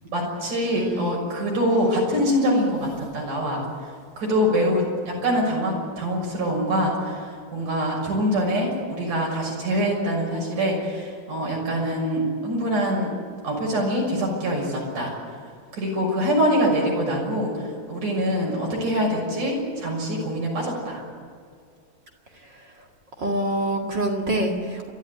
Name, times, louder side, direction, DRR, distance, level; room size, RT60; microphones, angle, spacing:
voice 1, 0.1-3.6 4.2-13.1 13.4-15.1 15.7-21.0, equal, 85° right, -1 dB, 7.9 m, -24 dB
voice 2, 0.7-1.2 22.5-22.6 23.2-24.9, right 1 dB, 40° right, 0 dB, 2.5 m, -26 dB
29.0 x 12.5 x 9.5 m, 2.2 s
omnidirectional pair, 3.5 m